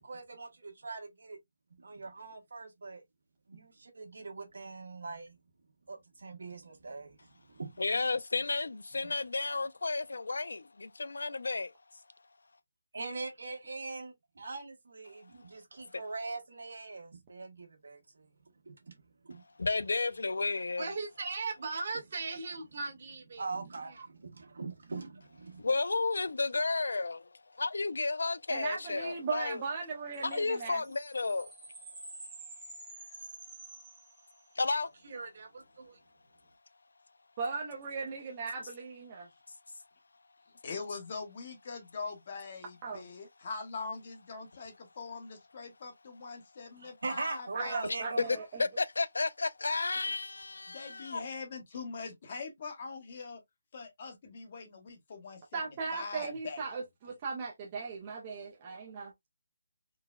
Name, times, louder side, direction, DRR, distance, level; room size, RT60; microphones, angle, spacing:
voice 1, 0.0-1.4 1.8-3.0 3.5-5.4 5.9-7.8 9.0-9.1 12.9-14.1 14.4-15.2 15.5-18.3 18.6-19.4 23.4-25.6 46.8-48.2, right 3 dB, 75° right, 1.2 m, -42 dB
voice 2, 7.8-11.7 19.6-20.8 25.6-27.3 27.5-29.6 30.2-31.5 34.6-34.9 48.6-51.3, left 3 dB, 85° left, 0.4 m, -32 dB
voice 3, 20.8-23.5 23.8-24.0 35.0-36.0, right 3 dB, 45° right, 1.1 m, -39 dB
voice 4, 28.5-30.8 37.4-39.3 42.8-43.0 47.5-48.6 55.5-59.1, right 4 dB, 25° right, 0.4 m, -38 dB
sound 1, 30.1-34.7, right 2 dB, 10° right, 1.0 m, -49 dB
voice 5, 40.6-47.9 48.2-48.4 50.7-53.4 53.7-56.6, left 4 dB, 35° left, 0.8 m, -43 dB
3.8 x 2.1 x 2.3 m
hypercardioid pair, 170°, 0 cm